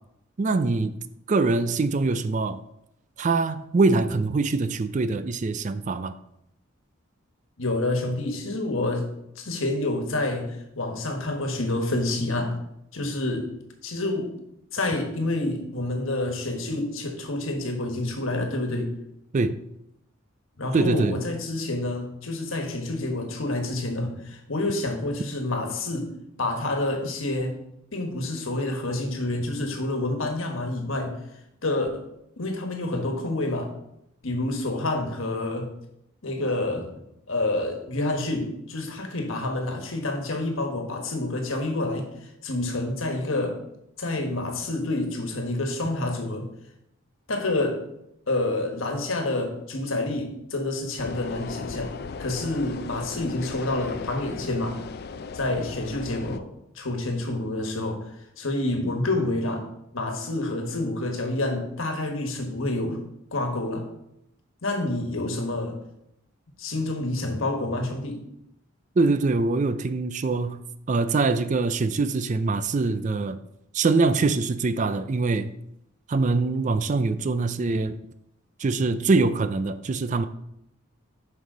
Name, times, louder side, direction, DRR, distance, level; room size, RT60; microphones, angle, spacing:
voice 1, 0.4-1.0 1.3-2.6 3.2-6.1 19.3-19.6 20.7-21.2 69.0-73.4 73.7-75.6 76.1-78.0 78.6-80.3, right 3 dB, 35° right, 12 dB, 0.4 m, -23 dB
voice 2, 7.6-9.1 9.4-12.6 12.9-13.4 13.8-14.3 14.7-18.9 20.6-26.1 26.4-27.5 27.9-31.2 31.6-32.0 32.4-33.7 34.2-35.7 36.2-36.9 37.3-43.6 44.0-46.5 47.3-47.8 48.3-51.9 52.2-54.8 55.3-56.5 56.7-59.7 59.9-63.0 63.3-63.9 64.6-65.8 66.6-68.2, left 2 dB, 75° left, 4 dB, 1.4 m, -28 dB
sound 1, 51.0-56.4, left 5 dB, 50° left, 0.4 m, -37 dB
6.6 x 5.5 x 4.9 m, 0.80 s
head